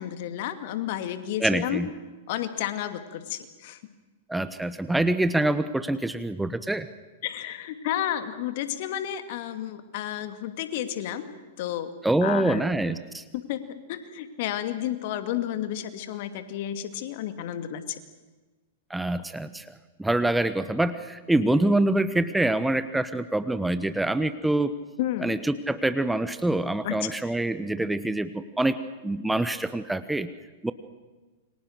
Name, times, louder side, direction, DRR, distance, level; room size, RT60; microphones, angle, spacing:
voice 1, 0.0-1.8 2.3-3.8 7.2-11.3 11.6-11.9 12.2-12.6 13.3-18.0 25.0-25.4 26.8-27.0, left 11 dB, 55° left, 9 dB, 2.5 m, -31 dB
voice 2, 1.4-1.9 4.3-6.9 12.0-13.2 18.9-19.6 20.0-24.7 25.2-28.8 29.0-30.3 30.6-30.7, right 1 dB, 5° right, 12 dB, 1.1 m, -25 dB
28.5 x 24.5 x 6.6 m, 1.3 s
hypercardioid pair, 105°, 0 cm